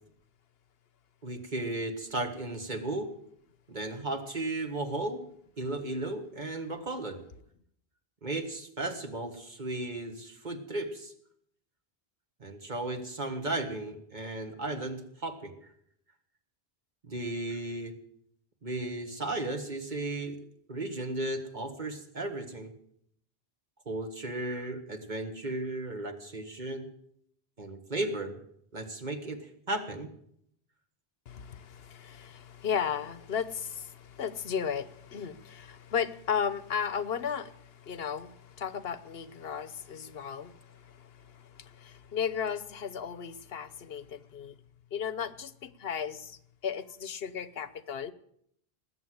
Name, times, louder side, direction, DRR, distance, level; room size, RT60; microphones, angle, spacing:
voice 1, 1.2-3.1 3.7-5.2 5.6-7.2 8.2-11.1 12.4-15.7 17.0-17.9 18.6-20.4 20.7-22.7 23.9-26.9 27.6-28.4 28.7-30.1, right 2 dB, 45° right, 6 dB, 1.7 m, -35 dB
voice 2, 31.3-44.6 44.9-48.1, left 7 dB, 75° left, 15 dB, 1.1 m, -35 dB
19.5 x 7.8 x 7.9 m, 0.69 s
omnidirectional pair, 1.0 m